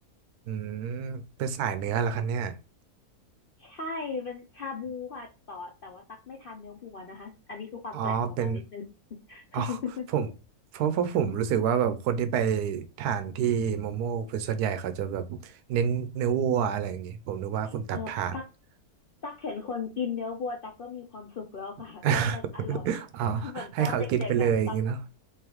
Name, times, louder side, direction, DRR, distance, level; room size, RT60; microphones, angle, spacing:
voice 1, 0.5-2.6 7.9-8.6 9.5-9.8 10.1-10.3 10.7-18.4 22.0-22.4 22.7-25.0, right 8 dB, 85° right, 1.1 m, -28 dB
voice 2, 3.6-8.8 9.3-10.1 17.9-18.5 19.2-22.9 23.4-24.8, left 5 dB, 60° left, 0.5 m, -37 dB
3.7 x 3.0 x 3.0 m
omnidirectional pair, 1.6 m